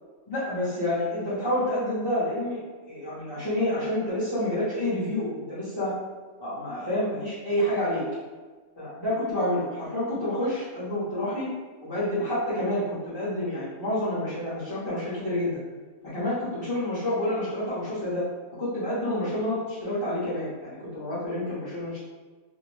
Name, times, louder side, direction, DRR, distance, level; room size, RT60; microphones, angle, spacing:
voice 1, 0.3-2.6 2.9-5.9 6.4-8.0 8.8-11.5 11.8-15.6 16.1-18.2 18.6-22.0, left 1 dB, 25° left, -11 dB, 0.7 m, -28 dB
2.6 x 2.0 x 3.1 m, 1.4 s
omnidirectional pair, 1.3 m